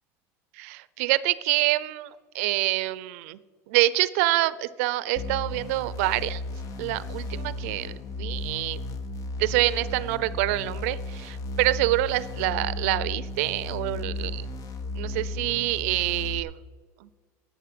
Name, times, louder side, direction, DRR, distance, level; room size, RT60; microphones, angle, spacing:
voice 1, 0.5-3.4 3.7-6.4 6.8-8.8 9.4-14.5 14.9-16.5 17.0-17.1, right 17 dB, 80° right, 18 dB, 0.6 m, -26 dB
sound 1, 5.2-16.4, left 2 dB, 45° left, 1.2 m, -34 dB
11.5 x 7.8 x 7.7 m, 1.5 s
supercardioid pair, 120°, 8 cm